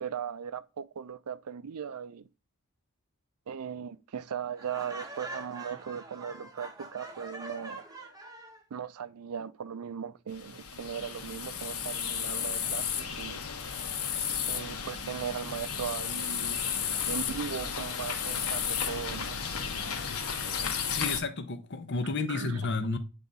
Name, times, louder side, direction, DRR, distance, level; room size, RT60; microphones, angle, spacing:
voice 1, 0.0-2.3 3.5-7.8 8.7-13.4 14.4-16.6 17.0-19.4 22.0-22.7, right 7 dB, 80° right, 0.5 m, -38 dB
Laughter, 4.6-8.6, right 2 dB, 15° right, 0.8 m, -44 dB
sound 1, 10.3-21.2, left 7 dB, 75° left, 1.1 m, -33 dB
voice 2, 20.9-23.0, left 3 dB, 50° left, 0.7 m, -31 dB
8.5 x 3.5 x 3.9 m
head